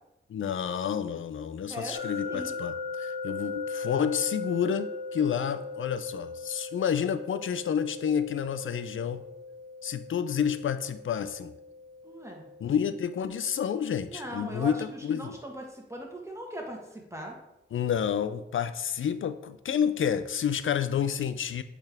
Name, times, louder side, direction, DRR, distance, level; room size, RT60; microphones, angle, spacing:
voice 1, 0.3-9.2 9.8-11.5 12.6-15.4 17.7-21.6, left 8 dB, 85° left, 12 dB, 0.4 m, -29 dB
voice 2, 1.7-2.6 12.0-12.4 14.1-17.4, right 1 dB, 15° right, 0 dB, 1.5 m, -39 dB
sound 1, 1.9-14.8, left 4 dB, 35° right, 1.3 m, -39 dB
8.0 x 3.6 x 3.5 m, 0.88 s
cardioid pair, 60°, 20 cm